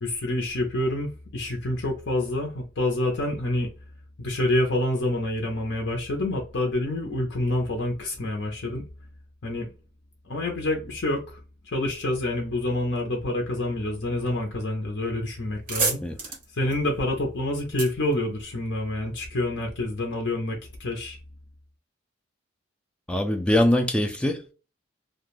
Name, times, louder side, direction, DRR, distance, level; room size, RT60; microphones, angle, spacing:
voice 1, 0.0-3.7 4.2-8.9 9.4-9.7 10.2-11.4 11.7-16.0 16.6-21.2, left 1 dB, 65° left, 0.7 m, -27 dB
sound 1, 14.9-15.1 15.4-19.0, right 3 dB, 40° right, 1.0 m, -32 dB
voice 2, 23.1-24.5, left 1 dB, 5° left, 0.3 m, -23 dB
2.4 x 2.3 x 3.0 m
head